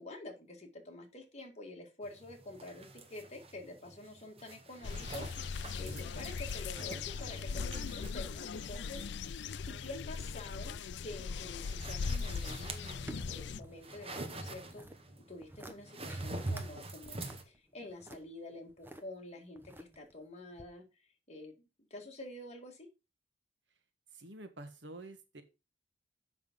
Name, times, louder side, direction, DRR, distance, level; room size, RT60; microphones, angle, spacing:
voice 1, 0.0-10.8 11.0-21.5 21.9-22.9, left 2 dB, 35° left, 2 dB, 2.2 m, -48 dB
sound 1, 2.0-17.4, right 2 dB, 30° right, 1.3 m, -46 dB
sound 2, 4.8-13.6, left 5 dB, 65° left, 0.4 m, -39 dB
sound 3, 12.4-14.2 14.5-15.0 15.4-15.8 16.1-16.7 17.0-19.0 19.6-20.1 20.6-20.7, right 1 dB, 10° right, 1.1 m, -50 dB
voice 2, 24.1-25.4, right 2 dB, 70° right, 8 dB, 1.4 m, -48 dB
7.7 x 5.9 x 5.3 m, 0.28 s
head